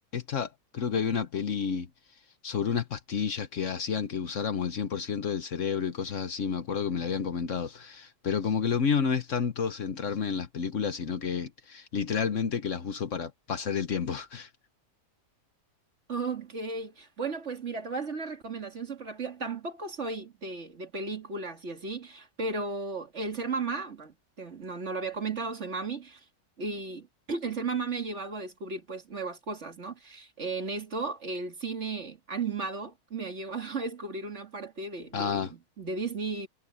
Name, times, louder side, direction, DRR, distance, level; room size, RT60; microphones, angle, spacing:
voice 1, 0.1-1.9 2.4-14.5 35.1-35.5, left 6 dB, 55° left, 1.3 m, -30 dB
voice 2, 16.1-26.2 26.6-36.5, right 4 dB, 50° right, 2.5 m, -35 dB
omnidirectional pair, 1.6 m